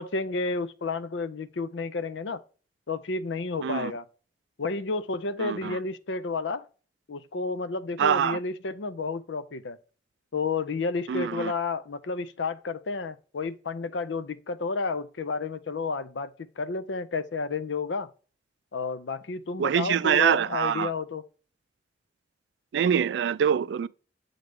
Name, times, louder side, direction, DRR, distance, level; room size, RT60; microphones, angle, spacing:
voice 1, 0.0-2.4 2.9-4.0 4.6-6.7 7.1-9.8 10.3-18.1 18.7-21.2, left 4 dB, 85° left, 0.6 m, -31 dB
voice 2, 5.4-5.8 8.0-8.4 11.1-11.5 19.6-20.9 22.7-23.9, right 8 dB, 65° right, 0.3 m, -24 dB
7.9 x 3.9 x 3.4 m
head